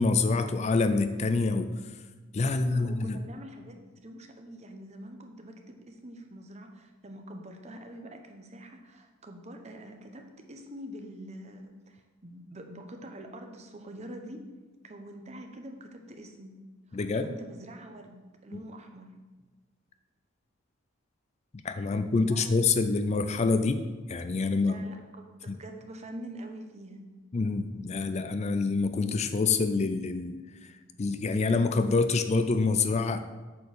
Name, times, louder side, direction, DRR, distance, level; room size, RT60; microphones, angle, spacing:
voice 1, 0.0-1.7 2.3-3.2 16.9-17.3 18.5-18.6 21.6-24.9 25.5-25.6 27.3-30.4 31.0-33.2, left 3 dB, 35° left, 9 dB, 0.4 m, -26 dB
voice 2, 2.5-14.4 14.8-16.6 16.9-19.1 21.9-22.6 24.6-27.0, right 1 dB, 35° right, 4 dB, 0.9 m, -45 dB
8.3 x 4.6 x 6.7 m, 1.3 s
head